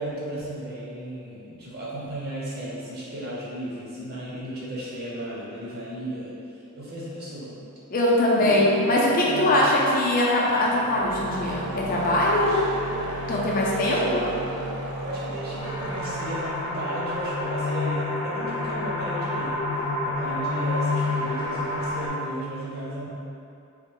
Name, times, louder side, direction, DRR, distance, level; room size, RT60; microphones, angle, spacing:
voice 1, 0.0-6.3 6.7-7.6 8.4-8.9 9.2-9.7 12.4-12.6 13.7-14.3 15.0-19.6 20.0-23.1, right 1 dB, 45° right, -7 dB, 0.8 m, -34 dB
voice 2, 7.9-12.6 13.3-14.0, left 1 dB, 40° left, -4 dB, 0.5 m, -21 dB
sound 1, 10.8-18.2, right 2 dB, 80° right, 0.4 m, -34 dB
sound 2, 15.6-22.1, left 2 dB, 85° left, 0.7 m, -28 dB
3.1 x 2.4 x 3.5 m, 2.7 s
head